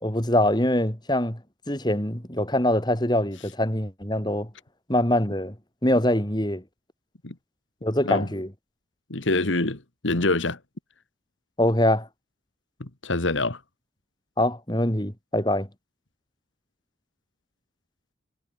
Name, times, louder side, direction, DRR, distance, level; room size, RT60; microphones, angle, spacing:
voice 1, 0.0-1.4 1.7-4.5 4.9-5.5 5.8-6.6 7.8-8.5 11.6-12.1 14.4-15.7, left 1 dB, 20° left, 3.2 m, -23 dB
voice 2, 9.1-10.6 12.8-13.6, left 2 dB, 80° left, 2.0 m, -25 dB
head